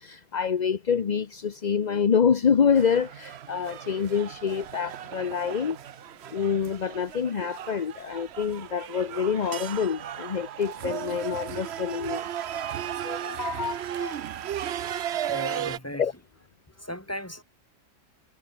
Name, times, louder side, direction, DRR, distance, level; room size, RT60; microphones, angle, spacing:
voice 1, 0.0-5.8 6.3-12.2 12.5-12.6 13.0-14.2 16.0-16.1, left 7 dB, 40° left, 0.7 m, -26 dB
sound 1, 2.7-15.8, right 10 dB, 55° right, 0.8 m, -35 dB
voice 2, 15.2-16.1 16.7-17.4, equal, 10° left, 5.0 m, -37 dB
omnidirectional pair, 1.6 m